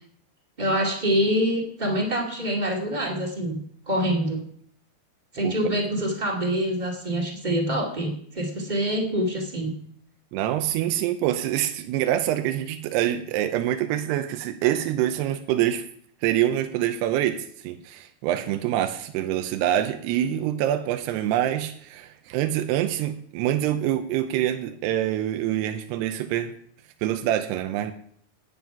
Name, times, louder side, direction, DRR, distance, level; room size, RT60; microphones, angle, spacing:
voice 1, 0.6-3.6 3.9-4.4 5.3-9.7, equal, 25° right, -1 dB, 1.0 m, -25 dB
voice 2, 10.3-15.8 16.2-26.5 27.0-27.9, right 12 dB, 85° right, 7 dB, 2.8 m, -25 dB
10.5 x 9.4 x 5.8 m, 0.62 s
omnidirectional pair, 4.7 m